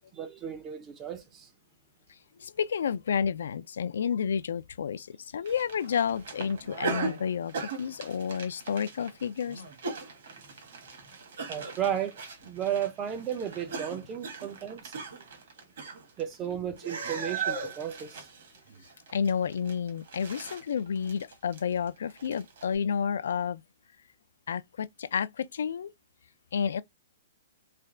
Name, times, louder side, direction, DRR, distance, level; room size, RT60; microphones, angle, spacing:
voice 1, 0.1-1.5 11.5-14.9 16.2-18.3, right 9 dB, 15° right, 0.4 m, -34 dB
voice 2, 2.4-9.6 19.1-23.6 24.5-25.9 26.5-26.8, left 7 dB, 70° left, 0.3 m, -30 dB
sound 1, 5.5-16.5 16.8-22.7, right 4 dB, 50° right, 1.1 m, -39 dB
3.3 x 2.3 x 3.7 m
hypercardioid pair, 180°, 0 cm